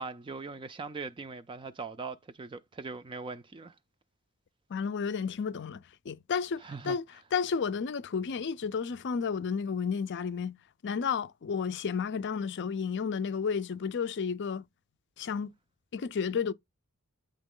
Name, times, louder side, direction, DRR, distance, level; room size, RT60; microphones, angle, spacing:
voice 1, 0.0-3.8 6.6-7.0, right 4 dB, 20° right, 0.3 m, -40 dB
voice 2, 4.7-7.0 7.3-10.6 10.8-14.6 15.2-15.5 15.9-16.5, left 6 dB, 55° left, 0.5 m, -32 dB
8.8 x 3.0 x 3.7 m
head